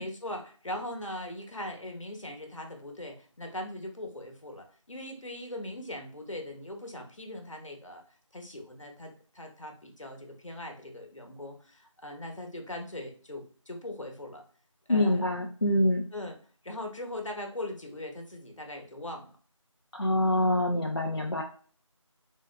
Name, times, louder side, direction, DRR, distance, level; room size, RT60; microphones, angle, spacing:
voice 1, 0.0-8.0 8.3-14.4 14.9-15.3 16.1-16.4 16.6-19.3, left 1 dB, 70° left, 3 dB, 1.0 m, -40 dB
voice 2, 14.9-16.1 19.9-21.4, left 1 dB, 50° left, 0 dB, 0.4 m, -25 dB
3.6 x 2.7 x 2.2 m, 0.42 s
figure-of-eight pair, 175°, 17 cm